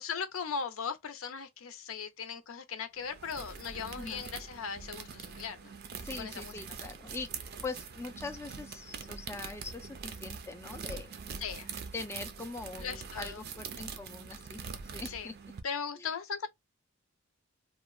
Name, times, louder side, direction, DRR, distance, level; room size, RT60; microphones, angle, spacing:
voice 1, 0.0-5.7 6.2-6.5 11.4-11.7 12.8-13.4 15.0-15.3 15.6-16.5, left 6 dB, 75° left, 0.6 m, -38 dB
sound 1, 3.0-15.6, right 5 dB, 50° right, 0.5 m, -44 dB
voice 2, 6.0-11.2 11.9-14.6 14.9-15.3 16.0-16.1, left 3 dB, 10° left, 0.3 m, -42 dB
3.0 x 2.1 x 2.3 m
head